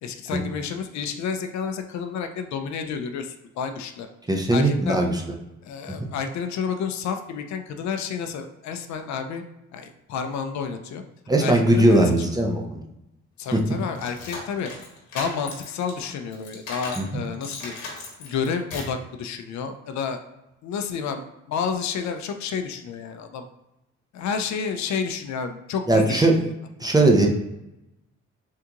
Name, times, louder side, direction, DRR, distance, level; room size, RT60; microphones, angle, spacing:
voice 1, 0.0-4.1 4.5-5.0 5.6-9.4 9.7-11.0 11.4-12.3 13.4-14.7 15.1-17.8 18.2-20.2 20.6-23.5 24.1-26.5 26.8-26.9, left 6 dB, 65° left, 7 dB, 0.5 m, -30 dB
voice 2, 4.3-5.2 6.0-6.1 11.3-12.8 13.5-13.6 17.0-17.2 25.9-26.3 26.8-27.3, right 2 dB, 15° right, 1 dB, 0.5 m, -19 dB
sound 1, 13.5-17.1 17.4-19.0, left 3 dB, 85° left, 1.0 m, -37 dB
3.6 x 2.4 x 2.8 m, 0.91 s
cardioid pair, 90°, 30 cm